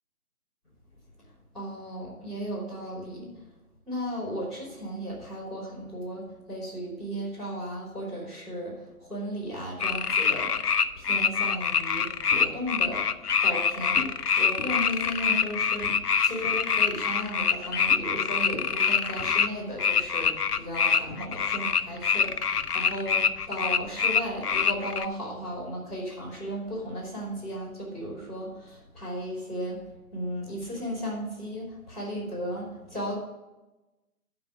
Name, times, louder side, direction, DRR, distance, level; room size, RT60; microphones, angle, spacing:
voice 1, 1.5-3.4 3.8-13.0 13.4-33.2, equal, ahead, -18 dB, 2.9 m, -35 dB
sound 1, 9.8-19.5 19.8-25.0, left 6 dB, 90° left, 0.7 m, -25 dB
sound 2, 12.3-12.8 14.0-14.2 14.6-16.8 17.8-18.1 18.4-19.3 20.2-20.4 21.1-24.4 25.1-25.7 26.2-26.3 26.5-28.3 28.9-29.8, left 2 dB, 35° left, 2.4 m, -45 dB
12.0 x 4.9 x 6.1 m, 1.0 s
figure-of-eight pair, 165°, 45 cm